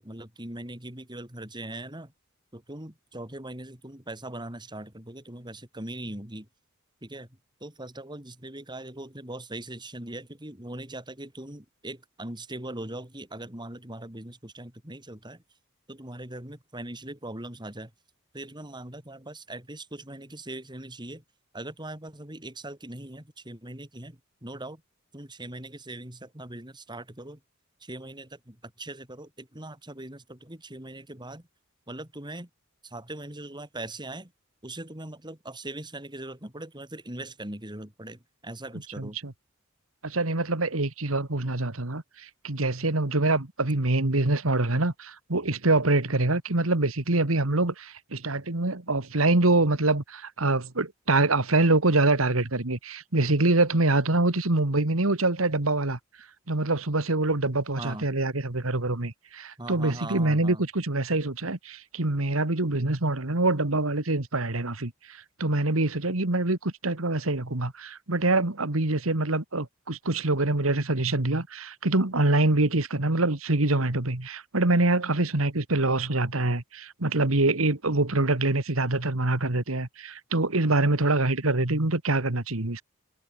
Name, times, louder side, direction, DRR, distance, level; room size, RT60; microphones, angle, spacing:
voice 1, 0.0-2.1 2.5-6.5 7.0-7.3 7.6-15.4 15.9-17.9 18.3-21.2 21.5-24.8 25.1-27.4 27.8-31.4 31.9-32.5 32.8-34.3 34.6-39.2 57.8-58.1 59.6-60.6, right 1 dB, 20° right, 4.3 m, -40 dB
voice 2, 39.0-39.3 40.0-56.0 56.5-82.8, right 2 dB, 85° right, 2.1 m, -25 dB
head